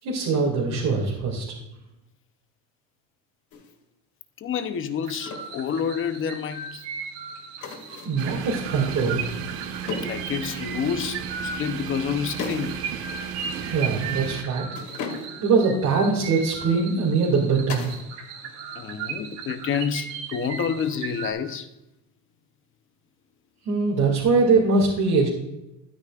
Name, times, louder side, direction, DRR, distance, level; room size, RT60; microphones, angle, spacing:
voice 1, 0.0-1.5 8.1-9.2 13.6-14.7 15.4-17.9 23.6-25.3, right 4 dB, 45° right, -4 dB, 2.6 m, -22 dB
sound 1, 3.5-3.7 5.3-5.6 7.6-8.2 9.9-10.3 12.4-12.8 13.1-13.2 14.7-15.6 17.7-18.1 18.4-18.9 21.3-21.7, left 4 dB, 50° left, 2.4 m, -36 dB
voice 2, 4.4-6.8 10.0-12.8 18.8-21.7, left 7 dB, 30° left, 10 dB, 0.8 m, -28 dB
sound 2, 5.0-21.3, right 6 dB, 65° right, 2.2 m, -37 dB
sound 3, 8.2-14.4, right 7 dB, 85° right, 1.3 m, -34 dB
12.0 x 9.5 x 2.5 m, 0.92 s
supercardioid pair, 120°, 39 cm